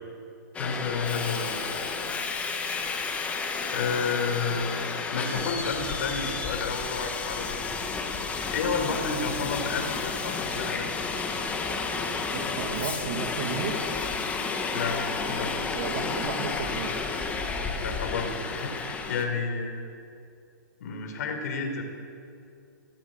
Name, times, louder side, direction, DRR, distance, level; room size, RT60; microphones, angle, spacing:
Subway metro underground, 0.5-19.2, left 4 dB, 15° left, 1.8 m, -31 dB
voice 1, 0.6-1.6 3.7-4.7 5.1-7.7 8.5-10.9 14.7-15.0 15.3-15.5 17.8-19.8 20.8-21.8, left 5 dB, 55° left, 5 dB, 4.6 m, -31 dB
voice 2, 12.3-13.7 15.7-17.0, right 6 dB, 50° right, 5 dB, 2.5 m, -33 dB
20.5 x 17.5 x 8.2 m, 2.6 s
hypercardioid pair, 150°, 10 cm